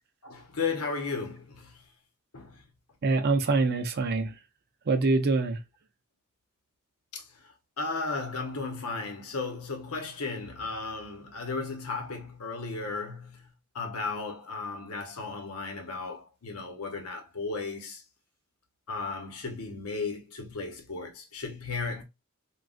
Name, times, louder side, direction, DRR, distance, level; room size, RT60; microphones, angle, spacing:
voice 1, 0.2-1.9 2.3-2.6 7.1-18.0 18.9-22.0, left 4 dB, 80° left, 0.8 m, -35 dB
voice 2, 3.0-4.3 4.9-5.6, right 3 dB, 45° right, 0.5 m, -25 dB
3.7 x 2.3 x 2.4 m
head